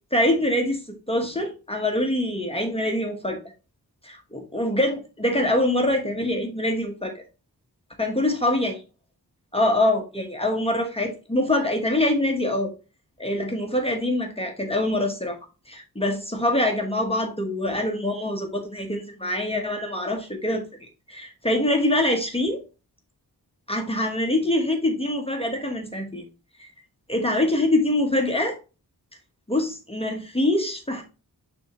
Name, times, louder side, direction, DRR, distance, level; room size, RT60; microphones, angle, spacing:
voice 1, 0.1-0.8 1.1-3.4 4.0-7.1 8.0-8.7 9.5-12.7 13.2-15.4 15.7-22.6 23.7-26.2 26.6-26.7 27.1-28.6 29.5-31.0, left 1 dB, 15° left, 2 dB, 1.1 m, -24 dB
9.4 x 3.5 x 2.9 m, 0.31 s
wide cardioid pair, 145°, 38 cm